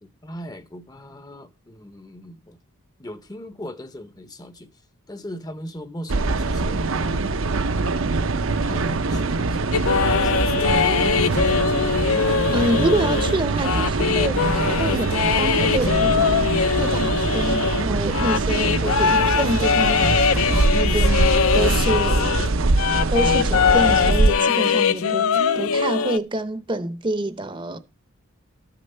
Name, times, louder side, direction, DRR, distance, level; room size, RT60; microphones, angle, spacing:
voice 1, 0.0-2.6 3.0-4.8 5.1-7.4 8.5-11.8 22.0-22.5, left 1 dB, 15° left, 0.7 m, -39 dB
sound 1, 6.1-24.3, right 3 dB, 60° right, 0.6 m, -23 dB
sound 2, 9.7-22.5 22.8-26.2, left 6 dB, 70° left, 0.6 m, -22 dB
voice 2, 12.5-16.3 16.8-22.2 23.1-25.3 25.6-27.8, right 2 dB, 20° right, 0.7 m, -27 dB
13.5 x 6.7 x 5.5 m
head